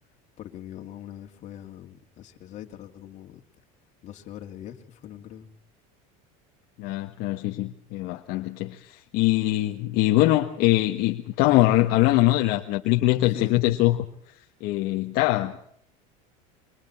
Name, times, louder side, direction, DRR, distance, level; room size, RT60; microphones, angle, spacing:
voice 1, 0.4-3.4 4.0-5.5 13.3-13.5, left 11 dB, 40° left, 2.8 m, -41 dB
voice 2, 6.8-14.0 14.6-15.6, left 16 dB, 60° left, 1.5 m, -22 dB
28.5 x 24.0 x 4.4 m
cardioid pair, 145°, 18 cm